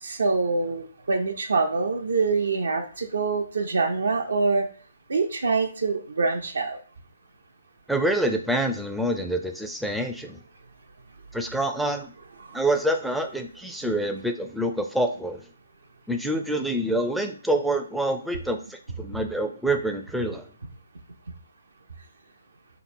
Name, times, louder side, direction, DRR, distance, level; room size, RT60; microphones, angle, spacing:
voice 1, 0.0-4.7 5.1-6.8 12.4-12.6, right 4 dB, 75° right, 4 dB, 0.5 m, -25 dB
voice 2, 7.9-10.4 11.3-12.1 12.5-15.4 16.1-20.5, right 1 dB, ahead, 5 dB, 0.4 m, -26 dB
3.5 x 3.0 x 2.5 m, 0.43 s
hypercardioid pair, 145°, 0 cm